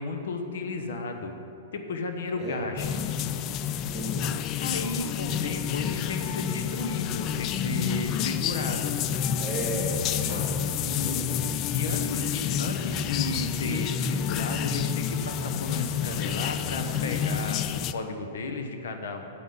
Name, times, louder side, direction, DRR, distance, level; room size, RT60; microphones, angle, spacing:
voice 1, 0.0-1.4 1.7-3.0 4.6-9.0 10.3-10.4 10.8-19.3, left 3 dB, 70° left, 5 dB, 1.1 m, -34 dB
sound 1, 2.8-17.9, left 8 dB, 35° left, 0.3 m, -29 dB
voice 2, 3.8-4.3 9.4-11.3, right 1 dB, ahead, -5 dB, 2.1 m, -35 dB
8.3 x 5.4 x 7.8 m, 2.8 s
hypercardioid pair, 140°, 0 cm